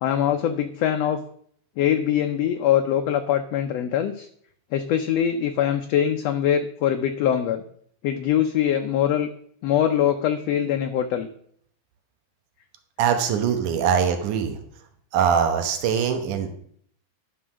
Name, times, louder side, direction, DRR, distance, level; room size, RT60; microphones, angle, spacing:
voice 1, 0.0-1.2 1.8-4.3 4.7-7.6 8.0-9.3 9.6-11.3, left 10 dB, 75° left, 7 dB, 1.6 m, -23 dB
voice 2, 13.0-14.6 15.1-16.5, right 7 dB, 90° right, 6 dB, 2.6 m, -22 dB
11.0 x 5.7 x 6.1 m, 0.63 s
omnidirectional pair, 3.5 m